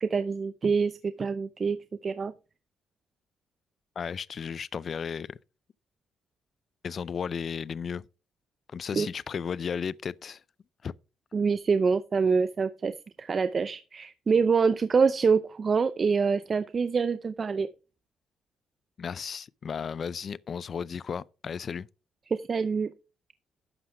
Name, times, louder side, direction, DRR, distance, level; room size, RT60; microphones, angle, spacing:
voice 1, 0.0-2.3 8.9-9.1 11.3-17.7 22.3-22.9, right 5 dB, 40° right, 0.6 m, -26 dB
voice 2, 4.0-5.4 6.8-8.0 8.7-10.4 10.8-10.9 19.0-21.9, left 6 dB, 50° left, 0.4 m, -34 dB
11.5 x 7.6 x 3.4 m
cardioid pair, 90°, 0 cm